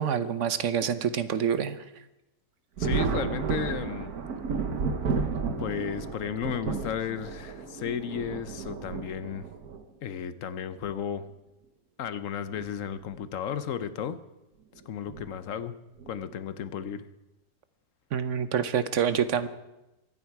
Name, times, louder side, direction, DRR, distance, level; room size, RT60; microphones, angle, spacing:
voice 1, 0.0-1.8 18.1-19.5, right 8 dB, 60° right, 12 dB, 1.1 m, -27 dB
voice 2, 2.8-4.1 5.6-9.5 10.0-11.3 12.0-14.2 14.9-15.8 16.1-17.1, left 8 dB, 65° left, 13 dB, 1.0 m, -34 dB
Thunder, 2.8-9.8 10.8-10.9 12.4-12.6 13.0-13.1 15.1-15.3 16.0-16.3, right 5 dB, 85° right, 1.6 m, -32 dB
23.5 x 9.6 x 4.7 m, 0.96 s
omnidirectional pair, 1.6 m